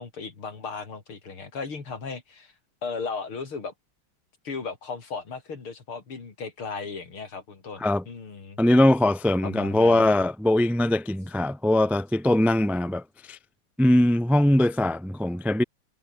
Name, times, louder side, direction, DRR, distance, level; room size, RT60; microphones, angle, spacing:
voice 1, 0.0-2.5 2.8-3.7 4.4-8.6 9.4-10.1, left 4 dB, 80° left, 4.5 m, -36 dB
voice 2, 8.6-13.4 13.8-15.6, left 1 dB, ahead, 0.5 m, -21 dB
omnidirectional pair, 2.3 m